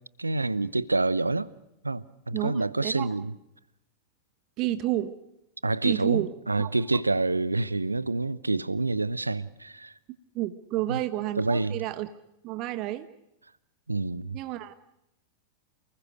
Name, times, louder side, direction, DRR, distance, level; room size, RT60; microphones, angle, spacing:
voice 1, 0.2-1.5 1.8-3.3 5.6-9.9 10.9-11.0 11.4-11.8 13.9-14.4, right 3 dB, 80° right, 0.8 m, -27 dB
voice 2, 2.3-3.1 4.6-5.1 5.8-6.3 6.6-6.7 10.3-12.1 12.4-13.1 14.3-14.7, right 15 dB, 40° right, 1.0 m, -30 dB
29.0 x 20.0 x 6.4 m
figure-of-eight pair, 90°, 0 cm